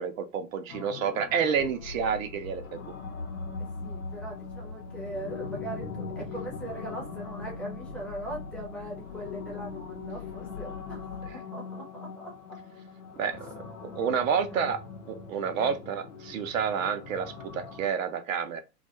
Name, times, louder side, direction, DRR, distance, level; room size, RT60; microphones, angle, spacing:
voice 1, 0.0-2.8 13.2-13.5 13.8-14.8 15.1-18.6, right 7 dB, 55° right, 0.5 m, -29 dB
sound 1, 0.7-17.9, left 5 dB, 50° left, 0.7 m, -42 dB
sound 2, 1.5-11.4, left 3 dB, 85° left, 0.8 m, -43 dB
voice 2, 3.6-12.6 14.4-14.7 15.6-15.7, right 1 dB, ahead, 0.6 m, -41 dB
2.3 x 2.2 x 2.7 m
figure-of-eight pair, 100°, 49 cm